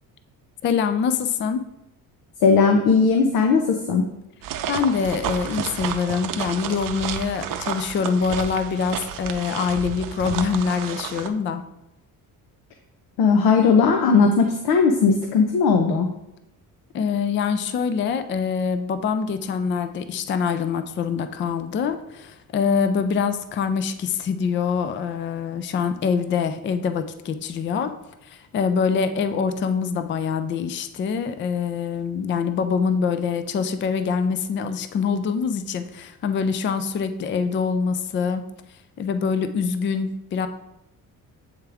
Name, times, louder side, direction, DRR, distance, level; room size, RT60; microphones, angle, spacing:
voice 1, 0.6-1.6 4.7-11.6 16.9-27.9 28.2-38.4 39.0-40.5, left 6 dB, 35° left, 10 dB, 0.4 m, -24 dB
voice 2, 2.4-4.0 13.2-16.1, left 5 dB, 90° left, 4 dB, 0.7 m, -18 dB
sound 1, 4.4-11.3, right 9 dB, 65° right, 0.6 m, -31 dB
8.0 x 3.5 x 3.4 m, 0.86 s
cardioid pair, 120°, 35 cm